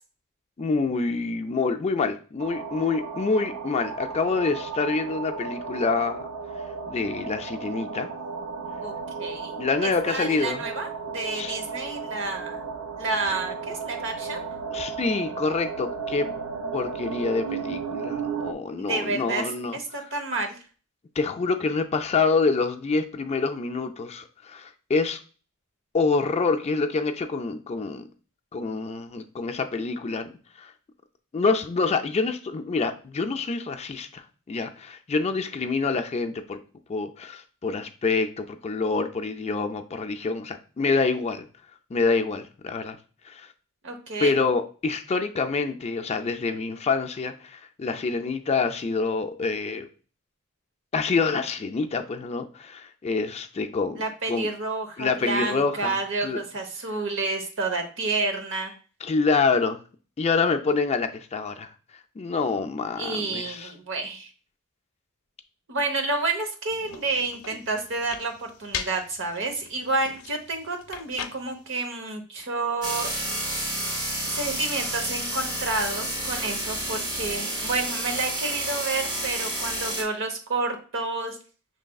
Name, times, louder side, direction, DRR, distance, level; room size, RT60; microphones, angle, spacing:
voice 1, 0.6-6.3 6.9-8.1 9.6-10.7 11.3-11.6 14.7-16.3 16.7-19.8 21.2-25.2 25.9-28.1 28.5-30.3 30.6-30.7 31.3-36.6 36.9-41.5 41.9-43.0 43.2-43.5 44.2-49.9 50.9-54.0 54.3-54.5 55.0-56.0 56.2-56.4 59.0-59.8 60.2-61.7 62.2-63.7, left 4 dB, 30° left, 7 dB, 0.4 m, -26 dB
sound 1, 2.4-18.5, right 5 dB, 85° right, 0.4 m, -34 dB
voice 2, 9.2-9.5 9.8-12.6 13.0-14.4 18.8-19.4 19.7-20.6 43.8-44.3 54.0-58.7 63.0-64.3 65.7-73.1 74.3-81.4, right 3 dB, 60° right, 5 dB, 1.0 m, -29 dB
sound 2, 66.7-71.7, left 8 dB, 85° left, 0.5 m, -40 dB
sound 3, 72.8-80.0, right 1 dB, 20° right, 0.9 m, -30 dB
6.3 x 3.3 x 2.3 m, 0.37 s
head